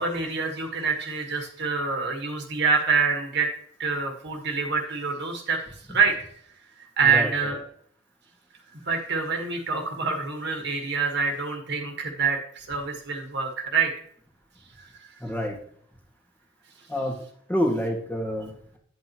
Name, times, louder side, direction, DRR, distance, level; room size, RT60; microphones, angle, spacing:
voice 1, 0.0-3.5 3.8-6.1 6.8-7.6 8.8-13.9 14.8-15.2, right 5 dB, 60° right, 2 dB, 1.6 m, -26 dB
voice 2, 15.2-15.6 16.9-17.2 17.5-18.8, equal, 10° left, 1 dB, 2.0 m, -27 dB
10.0 x 8.1 x 3.0 m, 0.62 s
head